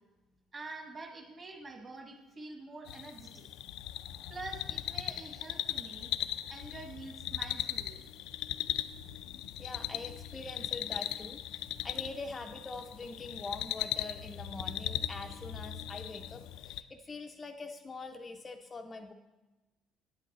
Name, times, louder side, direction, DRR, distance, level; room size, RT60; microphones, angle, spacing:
voice 1, 0.5-3.4 4.3-6.1 6.5-8.0, right 3 dB, 30° right, 4 dB, 1.3 m, -46 dB
sound 1, 2.9-16.8, left 12 dB, 85° left, 0.4 m, -38 dB
voice 2, 9.6-19.1, left 3 dB, 20° left, 4 dB, 0.4 m, -44 dB
9.4 x 8.3 x 4.0 m, 1.1 s
cardioid pair, 145°, 0 cm